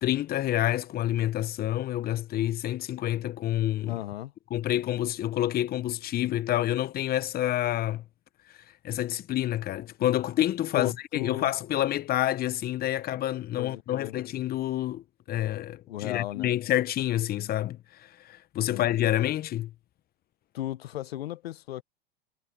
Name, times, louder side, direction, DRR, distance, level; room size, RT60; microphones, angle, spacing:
voice 1, 0.0-4.0 4.5-8.0 8.8-19.7, left 13 dB, 30° left, 0.9 m, -28 dB
voice 2, 3.8-4.3 10.7-11.5 13.6-14.2 15.9-16.5 18.7-18.9 20.5-21.8, left 13 dB, 80° left, 0.9 m, -36 dB
hypercardioid pair, 105°, 30 cm